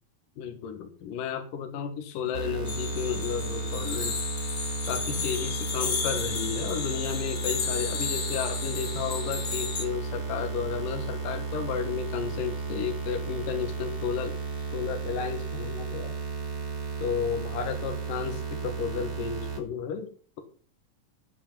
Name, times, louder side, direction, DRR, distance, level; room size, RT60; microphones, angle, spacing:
voice 1, 0.4-4.2 4.9-14.4 14.7-16.1 17.0-20.1, left 7 dB, 75° left, 6 dB, 3.0 m, -33 dB
sound 1, 2.3-19.6, right 4 dB, 30° right, 3.1 m, -34 dB
sound 2, 2.6-9.9, left 5 dB, 50° left, 1.1 m, -33 dB
16.0 x 5.8 x 5.4 m, 0.42 s
omnidirectional pair, 3.9 m